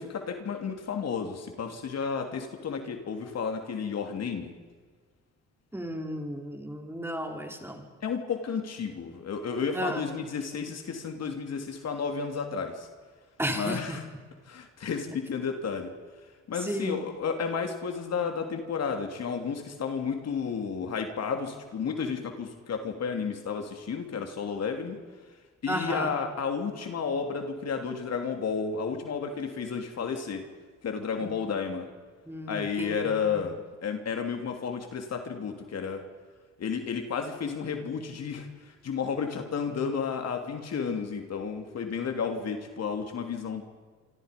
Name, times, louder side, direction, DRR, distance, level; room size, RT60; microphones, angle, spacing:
voice 1, 0.0-4.5 8.0-12.9 13.5-14.0 14.5-15.9 16.5-25.0 25.6-30.4 30.8-31.9 32.5-33.6 33.8-36.0 36.6-38.5 38.8-43.6, left 6 dB, 60° left, 5 dB, 3.3 m, -32 dB
voice 2, 5.7-7.8 9.7-10.1 13.4-14.0 16.6-17.0 25.7-26.1 31.2-31.3 32.3-33.4, equal, 10° right, 3 dB, 4.1 m, -33 dB
26.5 x 26.0 x 5.4 m, 1.5 s
cardioid pair, 90°, 30 cm